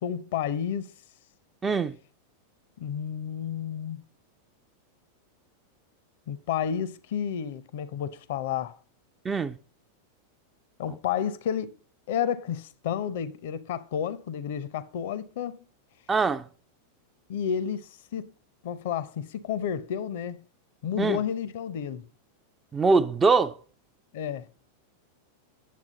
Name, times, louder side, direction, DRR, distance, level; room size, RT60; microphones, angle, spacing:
voice 1, 0.0-0.9 2.8-4.0 6.3-8.8 10.8-11.7 12.1-15.6 17.3-18.3 18.6-20.4 20.8-22.0 24.1-24.5, left 8 dB, 55° left, 0.6 m, -31 dB
voice 2, 1.6-1.9 9.2-9.5 16.1-16.4 21.0-21.2 22.7-23.5, right 4 dB, 15° right, 0.4 m, -23 dB
9.4 x 7.3 x 3.8 m
figure-of-eight pair, 90°, 0 cm